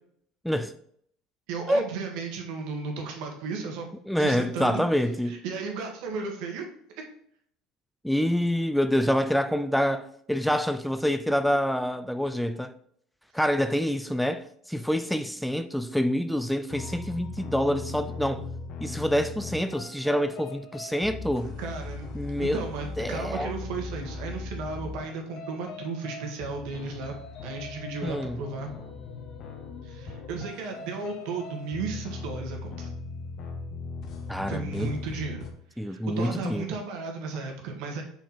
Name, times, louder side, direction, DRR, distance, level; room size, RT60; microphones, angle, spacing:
voice 1, 1.5-3.9 4.2-4.8 5.3-6.6 7.0-7.1 21.6-27.2 27.4-28.7 29.8-32.9 34.5-35.5 35.8-38.0, right 4 dB, 70° right, 1.6 m, -34 dB
voice 2, 4.1-5.4 8.0-12.7 13.3-18.5 18.8-21.5 22.1-22.6 23.0-23.5 28.0-28.4 34.3-34.9 35.8-36.7, equal, ahead, 0.4 m, -27 dB
sound 1, 16.7-35.5, left 3 dB, 55° left, 1.2 m, -39 dB
5.8 x 4.3 x 4.4 m
supercardioid pair, 100°, 0 cm